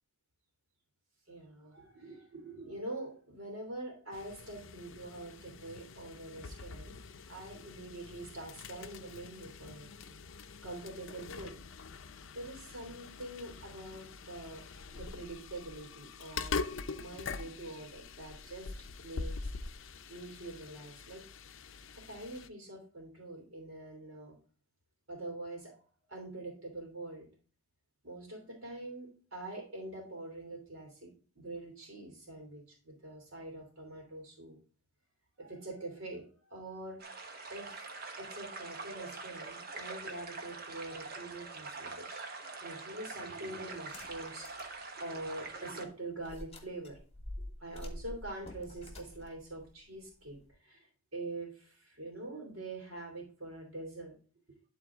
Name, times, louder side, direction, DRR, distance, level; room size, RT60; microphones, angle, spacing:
voice 1, 1.3-7.0 7.3-10.2 10.6-11.5 12.3-16.6 16.9-18.7 19.0-19.5 20.1-21.2 21.9-24.4 25.1-25.8 26.1-27.3 28.0-31.1 31.4-34.6 35.4-37.9 38.2-42.3 42.6-47.0 47.4-54.2, right 2 dB, 70° right, -2 dB, 2.7 m, -45 dB
sound 1, 4.1-22.5, left 4 dB, 60° left, 0.5 m, -44 dB
sound 2, 37.0-45.9, right 3 dB, 45° right, 1.1 m, -44 dB
sound 3, 43.8-44.8 45.2-45.3 46.2-50.5, left 1 dB, 30° left, 1.4 m, -47 dB
11.5 x 4.0 x 3.5 m, 0.39 s
head